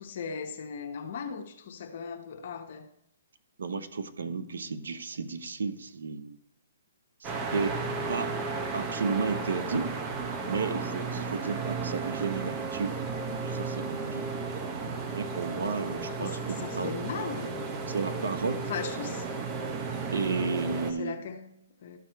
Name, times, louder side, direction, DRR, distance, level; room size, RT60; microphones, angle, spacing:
voice 1, 0.0-2.9 16.1-17.6 18.7-19.3 21.0-22.0, left 6 dB, 50° left, 0.9 m, -38 dB
voice 2, 3.6-6.4 7.2-7.8 8.1-8.4 8.7-9.9 10.5-13.0 13.4-14.3 15.1-17.4 17.9-18.6 20.1-21.2, right 4 dB, 80° right, 0.8 m, -33 dB
sound 1, 7.2-20.9, right 4 dB, 25° right, 0.9 m, -34 dB
13.0 x 4.8 x 4.6 m
hypercardioid pair, 150°, 0 cm